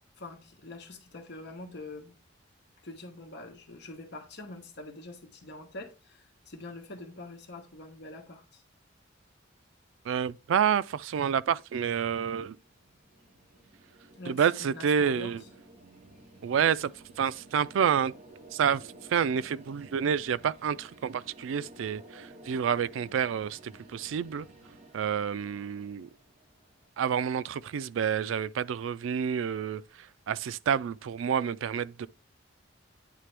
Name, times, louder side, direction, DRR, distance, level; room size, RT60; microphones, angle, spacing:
voice 1, 0.2-2.2 2.8-8.6 14.2-15.3, left 2 dB, 60° left, 1.2 m, -45 dB
voice 2, 10.0-12.6 14.3-15.4 16.4-18.1 18.5-24.5 24.9-26.1 27.0-32.1, right 7 dB, 85° right, 0.3 m, -29 dB
sound 1, 12.1-27.0, right 2 dB, 35° right, 1.4 m, -54 dB
9.2 x 3.3 x 3.3 m
head